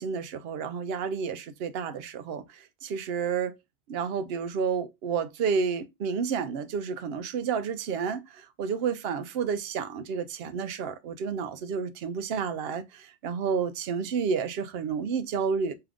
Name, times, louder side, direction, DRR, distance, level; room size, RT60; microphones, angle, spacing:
voice 1, 0.0-3.6 3.9-15.7, right 6 dB, 75° right, 0.8 m, -30 dB
3.7 x 2.9 x 3.4 m
omnidirectional pair, 1.0 m